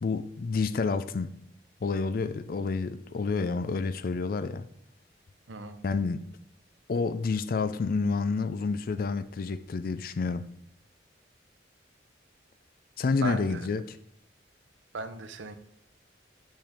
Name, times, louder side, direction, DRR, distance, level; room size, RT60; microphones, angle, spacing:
voice 1, 0.0-1.4 1.8-4.7 5.8-6.2 6.9-10.5 13.0-13.8, left 4 dB, 50° left, 0.4 m, -29 dB
voice 2, 5.5-5.8 13.2-13.7 14.9-15.5, right 3 dB, 85° right, 0.7 m, -37 dB
6.6 x 6.0 x 3.5 m
head